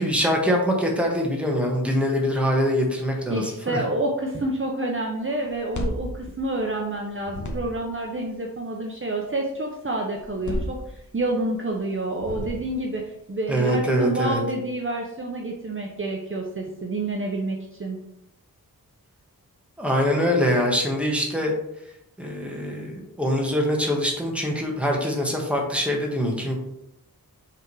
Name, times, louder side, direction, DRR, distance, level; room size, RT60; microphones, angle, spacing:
voice 1, 0.0-3.8 13.5-14.4 19.8-21.5 22.2-26.5, equal, 5° right, 0 dB, 1.4 m, -23 dB
voice 2, 3.3-18.0, right 2 dB, 35° right, 0 dB, 0.8 m, -28 dB
sound 1, 5.5-6.9 7.2-8.0 10.2-11.4 12.1-12.9, left 1 dB, 55° left, 1.1 m, -33 dB
5.8 x 3.6 x 4.7 m, 0.81 s
wide cardioid pair, 90°, 36 cm